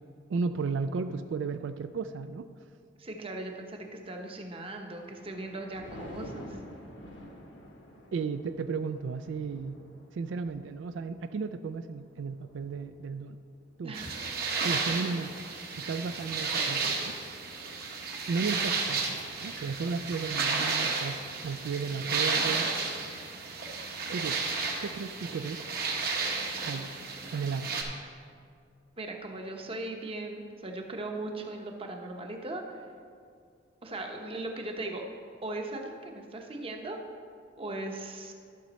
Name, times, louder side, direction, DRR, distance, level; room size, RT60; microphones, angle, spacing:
voice 1, 0.3-2.5 8.1-9.8 10.1-13.4 13.8-14.0 14.6-15.4 15.8-17.1 18.3-22.7 24.1-24.4 24.8-25.6 26.6-26.9 27.3-27.8, right 5 dB, 85° right, 9 dB, 0.3 m, -34 dB
voice 2, 3.0-6.5 13.8-14.2 29.0-32.8 33.8-35.0 35.4-37.0 37.6-38.3, right 2 dB, 30° right, 3 dB, 0.9 m, -38 dB
Thunder, 4.8-16.1 16.6-16.9, equal, 75° left, 1.2 m, -50 dB
sound 1, 13.9-27.8, right 4 dB, 55° right, 1.2 m, -32 dB
12.0 x 6.2 x 4.2 m, 2.3 s
head